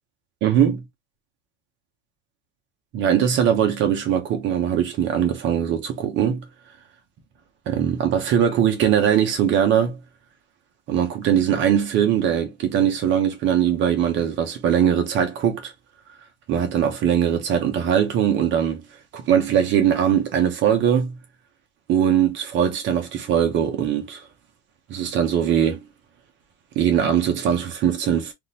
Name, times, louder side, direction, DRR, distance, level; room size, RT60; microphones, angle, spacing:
voice 1, 0.4-0.8 2.9-6.5 7.7-10.0 10.9-15.7 16.5-18.8 19.1-21.2 21.9-24.3 24.9-25.8 26.8-28.3, right 9 dB, 30° right, 0.7 m, -21 dB
3.6 x 2.5 x 2.7 m
cardioid pair, 170°, 38 cm